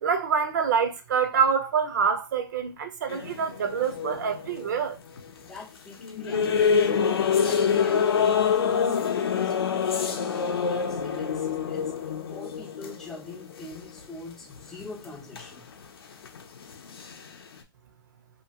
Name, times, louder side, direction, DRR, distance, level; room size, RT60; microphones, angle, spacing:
voice 1, 0.0-5.0, right 6 dB, 50° right, 0.6 m, -26 dB
sound 1, 3.1-5.6 6.0-14.2 14.5-15.9 16.1-17.6, left 6 dB, 80° left, 0.6 m, -26 dB
voice 2, 5.4-15.7, left 2 dB, 5° left, 0.3 m, -43 dB
2.9 x 2.2 x 2.8 m
hypercardioid pair, 160°, 12 cm